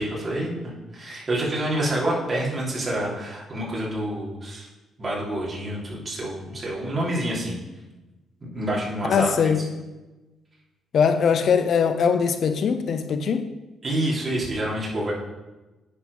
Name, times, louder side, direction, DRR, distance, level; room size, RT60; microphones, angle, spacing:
voice 1, 0.0-4.7 5.0-7.6 8.4-9.5 13.8-15.1, right 1 dB, 30° right, 3.2 m, -27 dB
voice 2, 9.0-9.9 10.9-13.5, left 6 dB, 60° left, 0.6 m, -21 dB
9.8 x 4.5 x 5.4 m
cardioid pair, 90°, 0 cm